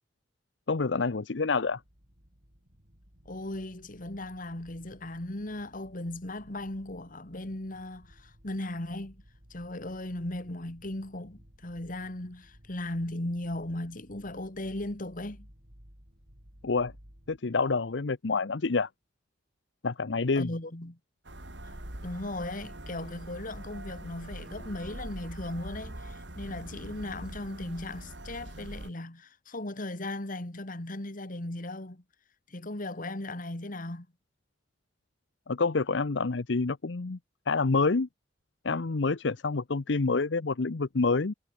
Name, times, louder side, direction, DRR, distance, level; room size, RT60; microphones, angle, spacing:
voice 1, 0.7-1.8 16.6-16.9 17.3-18.9 19.8-20.5 35.5-37.2 37.5-38.1 38.6-41.3, left 4 dB, 75° left, 0.8 m, -27 dB
sound 1, 1.6-17.4, equal, 55° right, 7.9 m, -57 dB
voice 2, 3.3-9.2 9.5-15.5 20.3-21.0 21.6-21.7 22.0-32.0 32.5-34.1, left 1 dB, 50° left, 2.2 m, -37 dB
sound 2, 21.3-28.9, right 1 dB, 70° right, 4.2 m, -43 dB
head